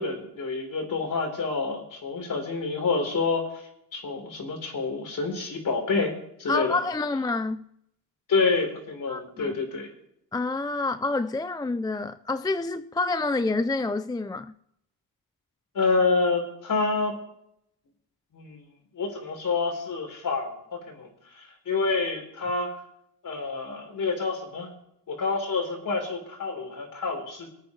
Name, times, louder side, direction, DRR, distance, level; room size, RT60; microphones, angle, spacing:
voice 1, 0.0-3.5 3.9-6.1 6.4-6.8 8.3-9.9 15.7-17.2 18.3-18.6 18.9-21.1 21.4-22.7 23.2-24.7 25.1-27.5, left 4 dB, 50° left, 4.2 m, -28 dB
voice 2, 6.5-7.6 9.1-9.6 10.3-14.5, left 3 dB, 10° left, 0.4 m, -28 dB
24.0 x 9.2 x 3.2 m
cardioid pair, 105°, 40 cm